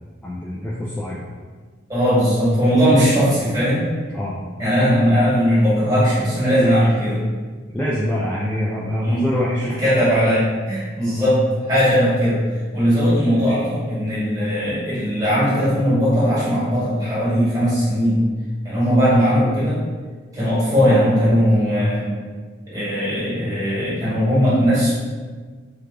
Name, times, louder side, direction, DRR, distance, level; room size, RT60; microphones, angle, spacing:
voice 1, 0.2-1.3 4.1-4.3 7.7-9.8 13.3-13.6, left 1 dB, 5° left, -7 dB, 0.3 m, -25 dB
voice 2, 1.9-3.9 4.6-7.2 9.0-9.3 9.8-12.4 12.7-18.2 18.6-19.8 20.3-22.1 22.7-24.9, equal, 15° right, -11 dB, 1.5 m, -18 dB
3.3 x 2.3 x 3.5 m, 1.5 s
head